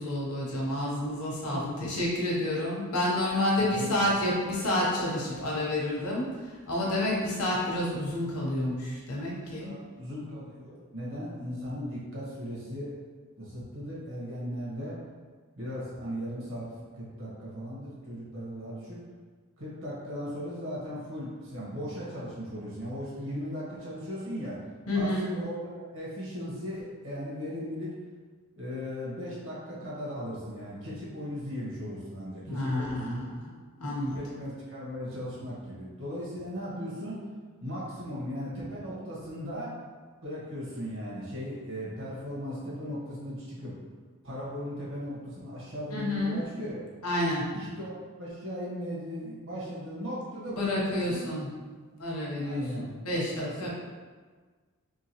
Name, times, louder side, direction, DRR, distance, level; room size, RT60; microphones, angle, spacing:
voice 1, 0.0-6.3 6.7-9.8 24.9-25.3 32.5-32.9 33.8-34.2 45.9-46.4 47.0-47.4 50.5-51.5 52.0-52.6 53.0-53.3 53.6-53.7, left 1 dB, 80° left, -4 dB, 1.0 m, -29 dB
voice 2, 3.6-4.0 9.4-13.0 13.4-14.9 15.6-16.7 16.9-19.0 19.6-24.6 24.9-27.9 28.6-33.2 33.8-37.2 37.6-39.7 40.2-43.7 44.2-46.8 47.5-51.3 52.4-53.7, equal, 60° right, -6 dB, 1.4 m, -37 dB
3.8 x 3.2 x 3.0 m, 1.5 s
head